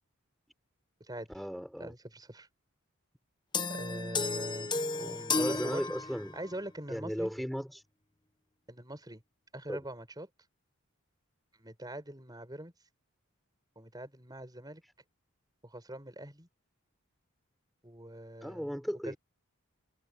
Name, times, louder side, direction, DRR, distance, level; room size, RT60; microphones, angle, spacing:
voice 1, 1.3-1.9 5.4-6.3 6.9-7.8 9.7-9.8 18.4-19.2, equal, ahead, 4.0 m, -36 dB
voice 2, 1.8-2.5 3.7-4.7 5.0-5.9 6.3-7.3 8.7-9.2 9.5-10.3 11.6-12.7 13.8-14.8 15.6-16.5 17.8-18.8 19.0-19.2, right 1 dB, 20° right, 5.5 m, -43 dB
sound 1, 3.5-6.5, left 4 dB, 20° left, 1.0 m, -33 dB
head